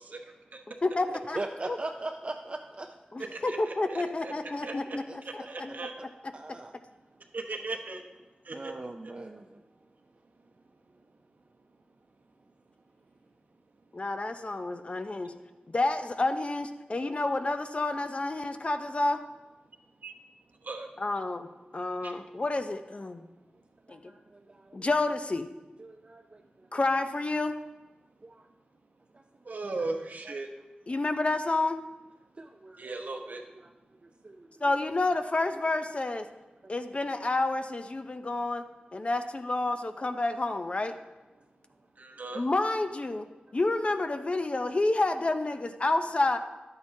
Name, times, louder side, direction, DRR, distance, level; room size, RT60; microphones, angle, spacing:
voice 1, 0.8-1.4 1.7-1.8 3.1-5.9 13.9-15.3 15.7-19.2 21.0-21.5 21.7-23.2 23.9-24.0 24.7-25.5 26.7-27.5 30.9-31.8 34.6-36.3 36.7-38.6 38.9-41.0 42.3-43.3 43.5-46.4, left 2 dB, 40° left, 8 dB, 0.5 m, -29 dB
voice 2, 1.3-2.9 5.1-6.1 6.3-6.7 8.5-9.6 23.9-24.8 25.8-26.4 28.2-28.5 29.1-29.6 30.3-30.4 32.4-33.4 33.6-33.7 34.0-34.7 36.6-36.7, right 2 dB, 35° right, 4 dB, 0.4 m, -41 dB
voice 3, 3.3-4.3 4.6-5.0 5.2-5.9 7.3-8.0 8.5-8.7 20.0-20.1 20.6-20.9 22.0-22.1 29.5-30.5 32.8-33.4 42.0-42.4, right 3 dB, 70° right, 3 dB, 0.9 m, -37 dB
10.5 x 8.7 x 2.7 m, 1.1 s
wide cardioid pair, 75°, 3 cm